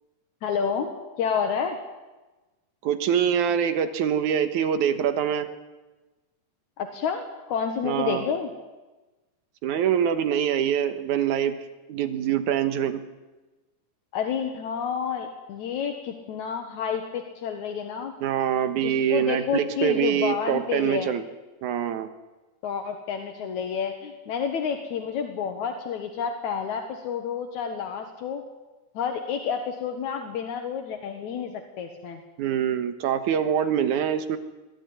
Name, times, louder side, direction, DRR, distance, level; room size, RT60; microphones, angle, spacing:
voice 1, 0.4-1.8 6.8-8.5 14.1-18.1 18.8-21.1 22.6-28.4 28.9-32.2, left 7 dB, 80° left, 4 dB, 2.8 m, -29 dB
voice 2, 2.8-5.5 7.8-8.2 9.6-11.5 11.9-13.0 18.2-21.2 21.6-22.1 32.4-34.4, right 9 dB, 90° right, 9 dB, 2.7 m, -24 dB
22.0 x 14.5 x 9.6 m, 1.2 s
omnidirectional pair, 3.3 m